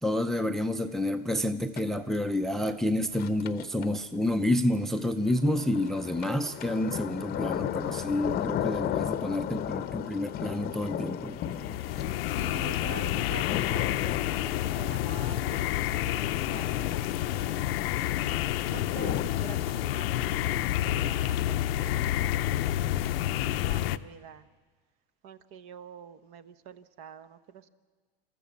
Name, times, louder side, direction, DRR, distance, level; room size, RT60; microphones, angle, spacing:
voice 1, 0.0-11.4, left 1 dB, ahead, 10 dB, 0.6 m, -29 dB
sound 1, 1.8-2.2 3.1-3.8 5.0-19.2, left 10 dB, 30° left, 0.8 m, -36 dB
sound 2, 11.3-24.0, left 13 dB, 75° left, 0.7 m, -29 dB
voice 2, 12.0-17.7 18.6-22.9 23.4-24.5 25.2-27.7, right 7 dB, 45° right, 13 dB, 1.1 m, -47 dB
28.5 x 14.0 x 7.2 m, 1.5 s
supercardioid pair, 125°, 30 cm